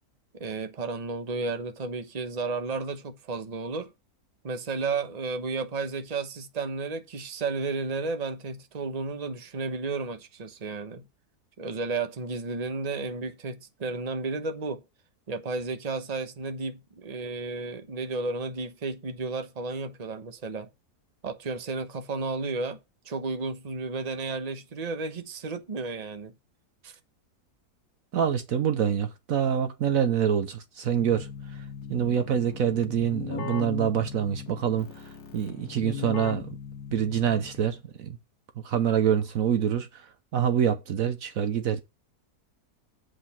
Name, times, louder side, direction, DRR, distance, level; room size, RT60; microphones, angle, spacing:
voice 1, 0.3-3.9 4.4-11.0 11.6-14.8 15.3-20.7 21.2-22.8 23.0-26.3 26.8-26.9, right 3 dB, 30° right, 1.0 m, -33 dB
voice 2, 28.1-31.3 31.9-34.9 35.3-36.4 36.9-38.2 38.6-39.9 40.3-41.8, right 8 dB, 65° right, 1.1 m, -25 dB
Keyboard (musical), 31.0-37.8, left 7 dB, 80° left, 1.5 m, -39 dB
7.8 x 4.9 x 5.8 m
omnidirectional pair, 1.7 m